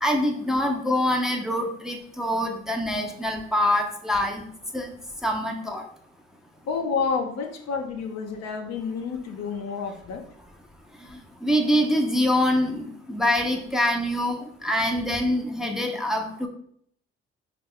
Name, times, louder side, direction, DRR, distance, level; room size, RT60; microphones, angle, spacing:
voice 1, 0.0-4.4 4.7-4.9 5.2-5.8 11.1-16.5, left 1 dB, ahead, 2 dB, 0.8 m, -25 dB
voice 2, 6.7-10.2, left 5 dB, 60° left, 4 dB, 0.7 m, -29 dB
5.0 x 2.4 x 3.6 m, 0.64 s
hypercardioid pair, 50°, 29 cm